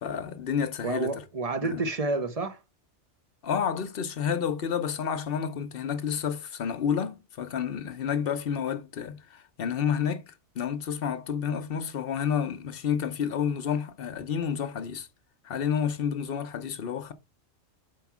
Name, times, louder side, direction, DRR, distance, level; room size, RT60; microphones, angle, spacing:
voice 1, 0.0-1.1 1.6-1.8 3.4-15.1 15.4-17.1, left 7 dB, 55° left, 0.9 m, -30 dB
voice 2, 0.8-2.6, right 3 dB, 35° right, 0.7 m, -29 dB
4.8 x 4.6 x 6.0 m
omnidirectional pair, 1.2 m